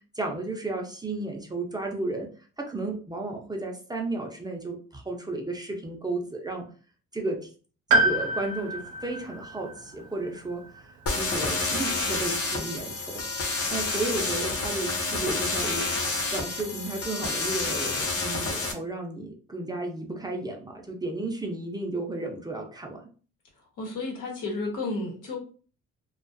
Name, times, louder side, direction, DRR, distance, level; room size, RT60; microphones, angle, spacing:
voice 1, 0.1-2.3 2.6-6.7 7.1-7.5 7.9-13.2 13.7-16.0 16.3-23.1, right 2 dB, 15° right, 1 dB, 0.5 m, -33 dB
Piano, 7.9-11.8 12.0-12.1 13.3-13.4, right 2 dB, 85° right, 0.6 m, -28 dB
sound 1, 11.1-18.7, left 3 dB, 50° left, 0.7 m, -29 dB
voice 2, 23.8-25.4, left 3 dB, 90° left, -1 dB, 1.0 m, -32 dB
2.4 x 2.3 x 2.5 m, 0.39 s
cardioid pair, 90°, 30 cm